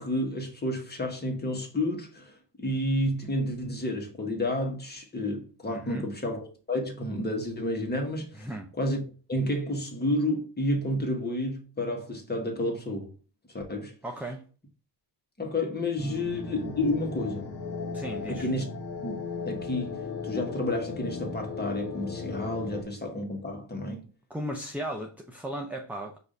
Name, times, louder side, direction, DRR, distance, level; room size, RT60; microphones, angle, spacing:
voice 1, 0.0-6.4 6.7-8.4 8.8-9.0 9.3-13.1 13.5-13.9 15.4-17.5 18.3-18.7 19.0-24.0, left 1 dB, 20° left, 1.4 m, -30 dB
voice 2, 5.7-6.1 8.3-8.7 14.0-14.5 17.9-18.5 24.3-26.2, right 1 dB, 5° right, 0.5 m, -36 dB
sound 1, 16.0-22.8, left 4 dB, 55° left, 1.2 m, -36 dB
4.9 x 2.8 x 3.7 m
cardioid pair, 85°, 49 cm